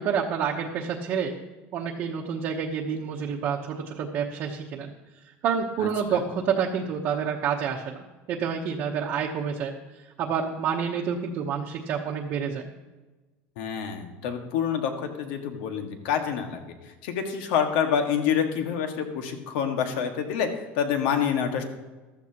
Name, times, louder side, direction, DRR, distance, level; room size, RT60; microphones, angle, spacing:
voice 1, 0.0-1.3 1.7-4.9 5.4-8.0 8.3-9.7 10.0-12.7, right 7 dB, 40° right, -1 dB, 1.0 m, -28 dB
voice 2, 5.8-6.2 13.6-20.5 20.8-21.6, left 8 dB, 80° left, 5 dB, 1.8 m, -27 dB
15.0 x 13.0 x 3.0 m, 1.2 s
cardioid pair, 175°, 5 cm